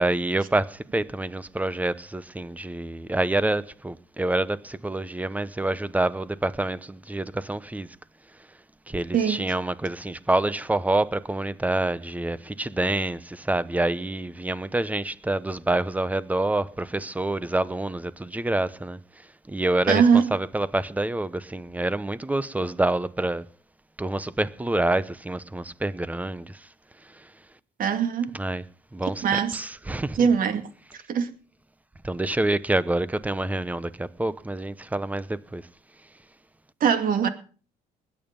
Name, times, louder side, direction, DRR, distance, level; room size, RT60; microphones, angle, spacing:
voice 1, 0.0-8.0 8.3-8.6 8.9-23.5 24.0-27.5 28.3-28.6 28.9-30.3 32.0-35.7 36.0-36.1, right 2 dB, 10° right, 0.8 m, -27 dB
voice 2, 9.1-9.5 19.9-20.2 27.8-28.4 29.2-29.6 30.1-30.6 31.1-31.3 36.8-37.3, right 7 dB, 55° right, 2.5 m, -21 dB
20.0 x 9.2 x 5.3 m
cardioid pair, 110°, 17 cm